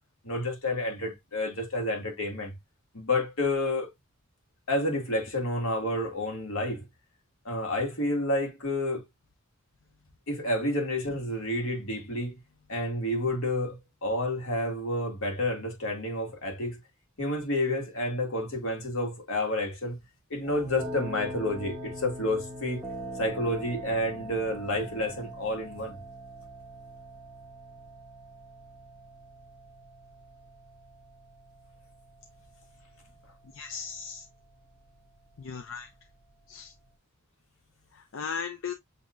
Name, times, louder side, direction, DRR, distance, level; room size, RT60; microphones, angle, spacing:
voice 1, 0.2-2.5 2.9-3.9 4.7-6.8 7.4-9.0 10.3-12.4 12.7-16.8 17.2-20.0 20.3-22.9 23.2-26.0, left 1 dB, 90° left, 1.8 m, -30 dB
sound 1, 20.4-36.9, right 1 dB, 10° right, 1.2 m, -43 dB
voice 2, 33.5-34.2 35.4-35.9 36.5-36.7 37.9-38.7, left 6 dB, 70° left, 0.6 m, -37 dB
7.4 x 2.9 x 2.5 m
head